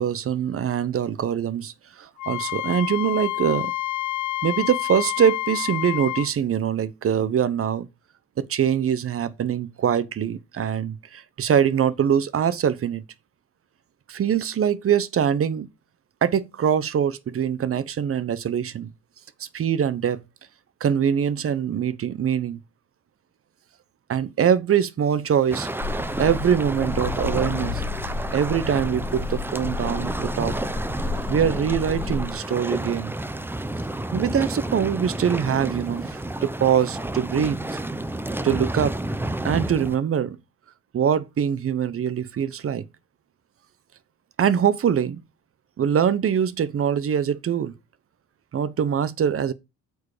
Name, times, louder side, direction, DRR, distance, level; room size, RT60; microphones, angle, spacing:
voice 1, 0.0-3.7 4.4-7.9 8.4-13.0 14.1-15.7 16.2-18.9 19.4-20.2 20.8-22.6 24.1-25.7 26.2-27.8 28.3-30.5 31.3-33.1 34.1-37.6 38.4-38.9 39.4-40.4 40.9-42.8 44.4-45.2 45.8-47.7 48.5-49.5, right 8 dB, 45° right, 0.9 m, -23 dB
Wind instrument woodwind instrument, 2.2-6.3, left 16 dB, 80° left, 0.7 m, -28 dB
sound 1, 25.5-40.0, right 1 dB, 5° right, 0.7 m, -30 dB
sound 2, 25.8-32.3, left 4 dB, 30° left, 4.0 m, -31 dB
8.6 x 4.7 x 4.9 m
cardioid pair, 90°, 30 cm